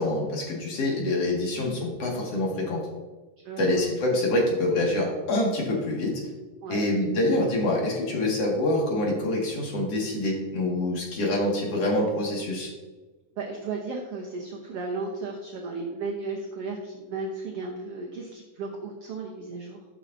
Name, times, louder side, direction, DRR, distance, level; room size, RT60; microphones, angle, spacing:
voice 1, 0.0-2.8 3.6-6.2 6.7-12.7, left 1 dB, 50° left, -2 dB, 2.8 m, -26 dB
voice 2, 3.4-3.8 6.6-6.9 13.4-19.9, right 3 dB, 70° right, 0 dB, 1.5 m, -35 dB
13.0 x 6.4 x 2.7 m, 1.2 s
omnidirectional pair, 3.8 m